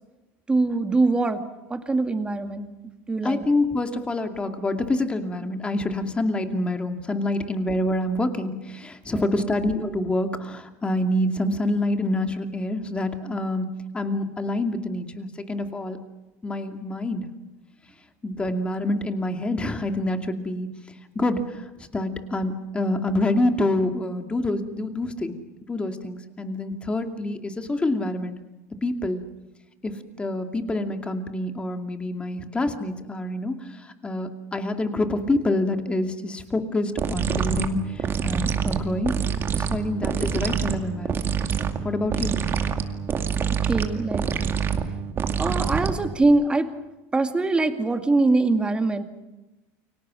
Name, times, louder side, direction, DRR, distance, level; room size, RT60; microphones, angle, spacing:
voice 1, 0.5-1.4 1.7-3.4 9.1-9.5 43.7-44.3 45.4-46.7 47.1-49.0, right 3 dB, 15° right, 7 dB, 2.2 m, -23 dB
voice 2, 3.2-13.7 13.9-16.0 16.4-17.3 18.2-20.7 21.1-25.3 25.7-28.3 28.8-29.2 29.8-39.1 39.6-41.3 41.8-42.3, left 1 dB, 15° left, 6 dB, 2.5 m, -27 dB
sound 1, 37.0-46.2, right 7 dB, 30° right, 2.2 m, -26 dB
29.5 x 24.0 x 6.3 m, 1.0 s
supercardioid pair, 135°, 8 cm